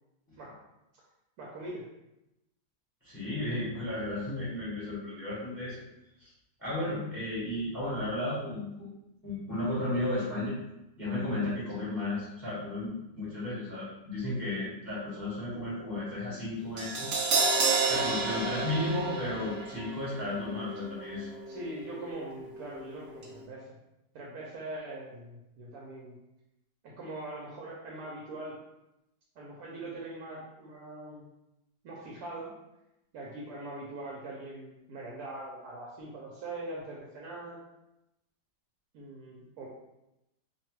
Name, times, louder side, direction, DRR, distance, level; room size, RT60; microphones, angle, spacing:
voice 1, 1.4-1.9 11.8-11.9 17.8-18.4 21.5-23.7 24.1-26.1 26.8-28.6 29.4-31.3 31.8-32.5 33.1-37.6 38.9-39.7, right 2 dB, 70° right, -4 dB, 1.0 m, -42 dB
voice 2, 3.0-5.8 6.2-6.3 6.6-8.9 9.2-10.5 11.0-17.1 17.8-21.3, left 1 dB, 15° left, -9 dB, 0.8 m, -34 dB
Crash cymbal, 16.8-22.9 23.2-23.3, right 4 dB, 90° right, 0.6 m, -31 dB
2.8 x 2.2 x 3.0 m, 0.91 s
omnidirectional pair, 1.9 m